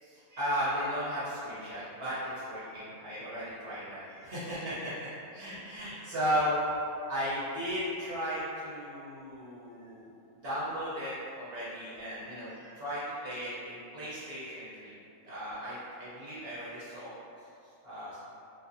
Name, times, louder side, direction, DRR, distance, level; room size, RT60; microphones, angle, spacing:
voice 1, 0.0-4.9 5.3-6.6 7.1-10.1 10.4-14.9 15.2-17.1 17.8-18.2, equal, 50° right, -10 dB, 0.8 m, -35 dB
2.6 x 2.5 x 2.5 m, 2.5 s
omnidirectional pair, 1.5 m